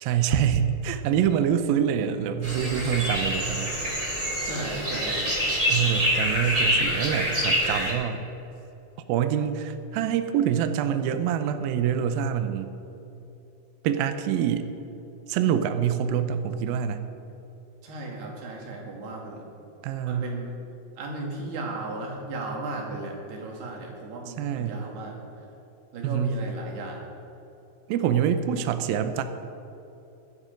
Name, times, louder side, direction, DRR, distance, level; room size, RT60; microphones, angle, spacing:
voice 1, 0.0-3.7 5.7-8.3 9.1-12.7 13.8-14.7 15.3-17.0 19.8-20.3 24.3-24.8 26.0-26.4 27.9-29.2, right 9 dB, 85° right, 9 dB, 2.1 m, -25 dB
sound 1, 2.4-7.9, equal, 15° right, 2.4 m, -26 dB
voice 2, 4.4-5.5 17.8-19.5 20.1-20.6 21.0-25.2 25.9-27.0, right 2 dB, 65° right, -1 dB, 4.0 m, -35 dB
17.5 x 11.5 x 5.3 m, 3.0 s
omnidirectional pair, 5.1 m